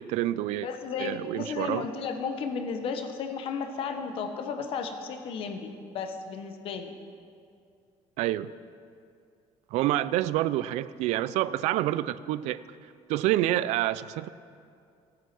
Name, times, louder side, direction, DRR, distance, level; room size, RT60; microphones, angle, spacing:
voice 1, 0.0-0.7 1.0-1.9 8.2-8.5 9.7-12.6 13.1-14.3, right 14 dB, 75° right, 17 dB, 0.4 m, -27 dB
voice 2, 0.6-6.9, left 5 dB, 50° left, 6 dB, 1.1 m, -34 dB
15.5 x 9.3 x 6.0 m, 2.3 s
cardioid pair, 165°, 12 cm